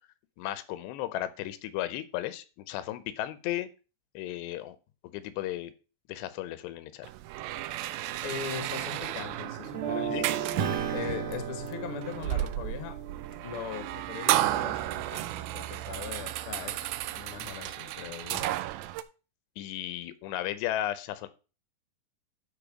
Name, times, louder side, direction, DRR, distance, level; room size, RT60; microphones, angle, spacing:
voice 1, 0.4-3.7 4.1-4.8 5.1-5.7 6.1-7.1 10.0-10.3 19.6-21.3, left 13 dB, 90° left, 14 dB, 3.0 m, -35 dB
sound 1, 7.0-19.0, right 14 dB, 85° right, 2.0 m, -33 dB
voice 2, 8.2-10.2 10.9-12.9 13.4-18.5, left 8 dB, 60° left, 7 dB, 1.4 m, -40 dB
sound 2, 9.7-15.8, right 8 dB, 55° right, 1.5 m, -38 dB
Acoustic guitar / Strum, 10.6-15.3, right 7 dB, 70° right, 2.0 m, -38 dB
12.0 x 4.6 x 4.9 m, 0.33 s
omnidirectional pair, 4.8 m